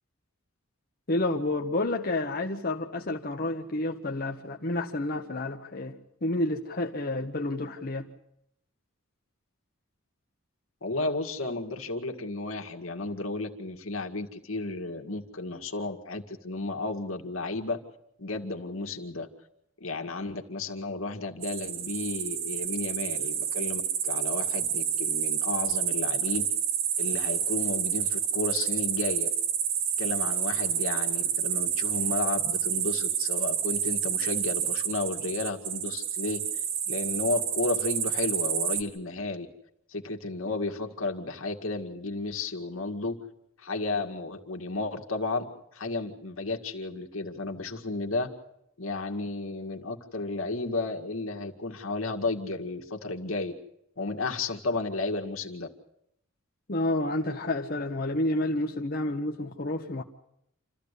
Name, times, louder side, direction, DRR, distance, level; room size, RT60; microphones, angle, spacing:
voice 1, 1.1-8.1 56.7-60.0, left 2 dB, 45° left, 1.1 m, -30 dB
voice 2, 10.8-17.8 18.2-19.3 19.8-26.5 27.0-29.3 30.0-36.4 36.9-39.5 39.9-43.2 43.6-45.5 45.7-48.3 48.8-53.5 54.0-55.7, left 3 dB, 80° left, 2.1 m, -33 dB
sound 1, 21.4-38.8, right 8 dB, 65° right, 1.7 m, -29 dB
28.0 x 14.0 x 8.3 m
head